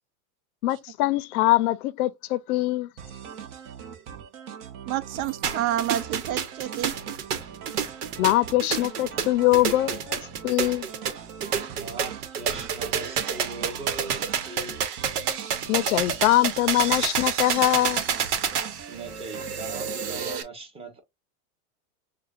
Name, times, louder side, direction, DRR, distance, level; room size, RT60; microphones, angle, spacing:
voice 1, 0.6-2.9 8.2-10.9 15.7-18.0, left 16 dB, 70° left, 0.6 m, -23 dB
sound 1, 3.0-20.4, right 7 dB, 45° right, 0.9 m, -42 dB
voice 2, 4.9-6.9, right 12 dB, 70° right, 0.7 m, -29 dB
sound 2, 5.4-20.4, right 7 dB, 85° right, 1.0 m, -29 dB
voice 3, 11.7-14.8 18.9-21.0, right 3 dB, 15° right, 1.0 m, -40 dB
6.6 x 2.3 x 2.3 m
supercardioid pair, 135°, 45 cm